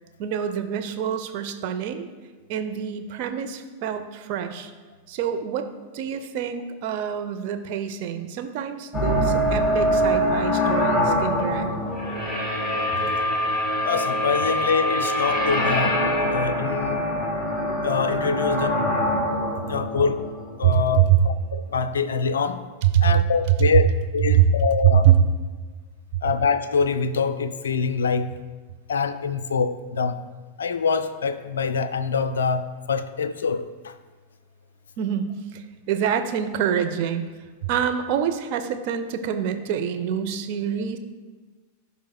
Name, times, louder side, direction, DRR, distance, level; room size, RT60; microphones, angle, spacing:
voice 1, 0.2-2.1 2.5-4.7 5.1-5.7 5.9-11.8 20.6-21.2 22.9-23.1 24.3-24.5 25.0-25.1 35.0-35.6 35.9-37.2 37.7-41.0, right 10 dB, 45° right, 7 dB, 0.6 m, -25 dB
sound 1, 8.9-21.0, equal, ahead, 1.8 m, -24 dB
voice 2, 13.8-17.0 17.8-18.8 19.7-20.3 20.6-22.6 23.0-25.1 26.2-28.3 28.9-30.2 30.6-33.9, left 5 dB, 65° left, 10 dB, 0.4 m, -25 dB
15.0 x 5.1 x 2.3 m, 1.3 s
figure-of-eight pair, 90°, 0 cm